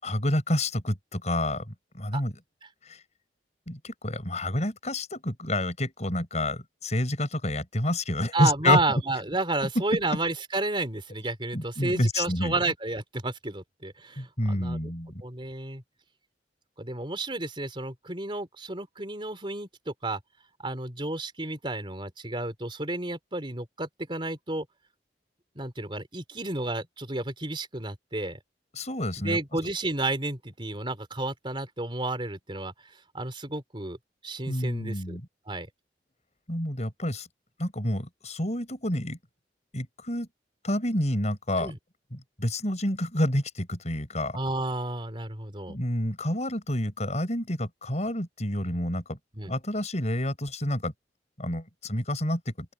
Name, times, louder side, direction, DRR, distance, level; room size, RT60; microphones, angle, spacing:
voice 1, 0.0-2.3 2.9-3.0 3.7-8.8 11.5-12.6 14.2-15.2 28.7-29.4 34.5-35.3 36.5-37.3 37.6-39.2 39.7-40.3 40.6-41.7 42.1-44.4 45.7-49.2 49.4-50.9 51.4-52.5, left 1 dB, 40° left, 7.4 m, -28 dB
voice 2, 8.3-14.8 15.2-15.8 16.8-20.2 20.6-24.7 25.6-28.4 29.2-32.7 33.1-34.0 34.2-35.2 35.5-35.7 41.6-41.8 44.3-45.8 49.3-49.5, right 2 dB, 30° right, 3.8 m, -31 dB
open air
head